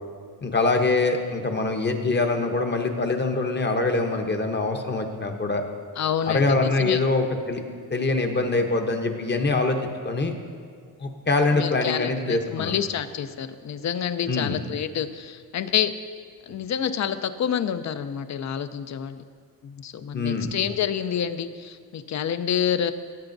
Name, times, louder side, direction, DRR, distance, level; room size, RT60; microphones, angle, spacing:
voice 1, 0.4-5.6 6.3-7.6 7.9-9.8 10.0-10.3 11.0-12.7 14.3-14.6 20.1-20.5, left 3 dB, 25° left, 4 dB, 0.8 m, -24 dB
voice 2, 6.0-7.0 11.5-15.9 16.5-19.2 19.6-22.9, left 8 dB, 45° left, 12 dB, 0.5 m, -28 dB
17.5 x 7.9 x 2.6 m, 2.1 s
wide cardioid pair, 135°, 39 cm